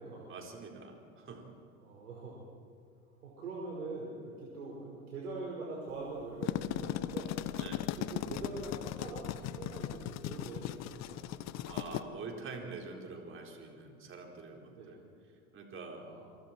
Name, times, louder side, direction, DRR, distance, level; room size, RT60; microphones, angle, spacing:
voice 1, 0.3-1.5 7.5-7.8 11.6-15.0 15.5-16.1, right 4 dB, 30° right, 1 dB, 4.6 m, -45 dB
voice 2, 1.8-2.3 3.2-7.4 8.0-11.2 14.7-14.9 15.9-16.2, right 3 dB, 80° right, -3 dB, 5.1 m, -43 dB
sound 1, 6.2-12.0, left 12 dB, 40° left, 1.0 m, -37 dB
29.0 x 24.0 x 4.6 m, 2.4 s
hypercardioid pair, 95°, 43 cm